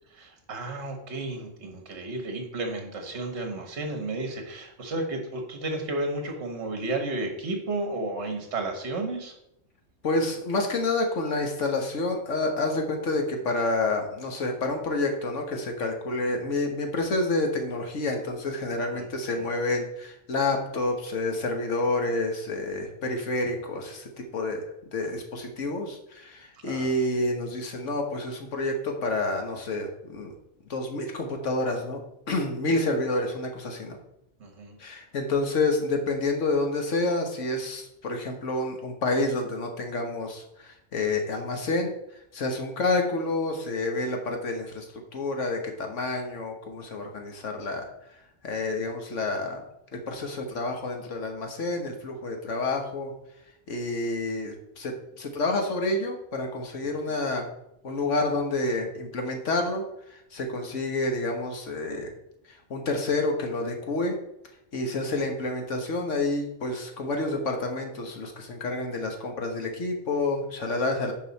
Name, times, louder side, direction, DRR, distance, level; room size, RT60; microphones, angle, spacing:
voice 1, 0.1-9.3 18.9-19.1 19.3-19.5 26.6-27.1 34.4-34.8 57.1-57.2, right 2 dB, 65° right, 4 dB, 1.5 m, -33 dB
voice 2, 10.0-24.6 24.9-30.4 30.7-32.0 32.3-34.0 34.8-41.9 42.3-44.9 45.1-47.9 48.4-49.6 49.9-53.1 53.7-57.5 57.8-62.1 62.7-64.2 64.7-71.1, left 2 dB, 75° left, 3 dB, 1.6 m, -29 dB
9.0 x 5.5 x 4.1 m, 0.80 s
omnidirectional pair, 1.3 m